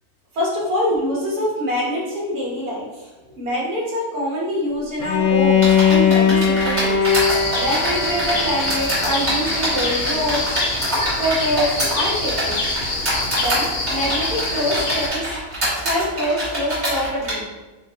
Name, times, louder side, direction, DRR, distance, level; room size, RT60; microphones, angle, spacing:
voice 1, 0.3-3.1 3.4-7.0 7.3-10.6 11.2-12.8 13.4-15.3 15.8-17.5, equal, 70° right, -5 dB, 1.6 m, -25 dB
Bowed string instrument, 5.0-10.0, left 7 dB, 75° left, 1.0 m, -20 dB
sound 1, 5.6-17.3, right 1 dB, 45° right, 1.7 m, -25 dB
sound 2, 7.1-15.1, left 2 dB, 55° left, 0.6 m, -25 dB
4.2 x 2.1 x 3.8 m, 1.2 s
omnidirectional pair, 1.7 m